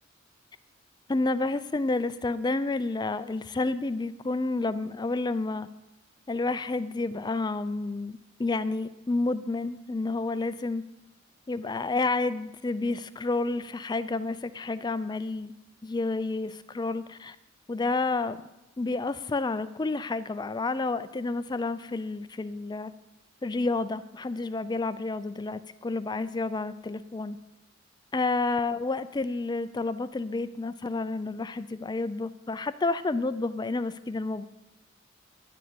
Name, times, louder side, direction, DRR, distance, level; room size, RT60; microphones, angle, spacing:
voice 1, 1.1-5.7 6.3-10.8 11.5-15.5 15.8-17.4 17.7-18.4 18.8-22.9 23.4-27.4 28.1-34.4, left 3 dB, 20° left, 13 dB, 0.4 m, -30 dB
11.5 x 6.8 x 9.2 m, 0.93 s
head